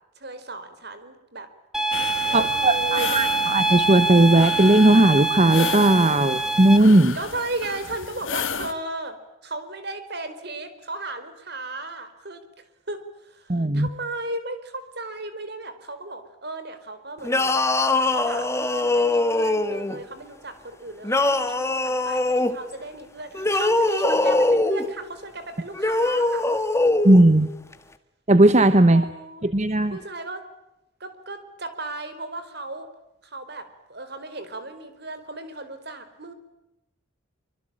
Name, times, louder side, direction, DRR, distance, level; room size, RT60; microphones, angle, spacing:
voice 1, 0.1-1.5 2.3-3.1 7.1-9.2 9.4-17.5 17.9-26.4 28.9-29.5 29.9-30.4 31.0-32.9 33.2-36.3, right 2 dB, 55° right, 10 dB, 4.7 m, -35 dB
sound 1, 1.7-6.8, right 3 dB, 5° right, 1.9 m, -25 dB
sound 2, 1.9-8.7, left 6 dB, 80° left, 2.3 m, -34 dB
voice 2, 2.3-7.2 13.5-13.9 27.0-27.5 28.3-29.0 29.4-30.0, right 1 dB, 35° right, 12 dB, 1.1 m, -17 dB
sound 3, 17.2-20.0 21.0-22.6 23.3-24.9 25.7-27.2, left 2 dB, 15° left, 1.7 m, -22 dB
26.0 x 25.5 x 9.0 m, 0.92 s
head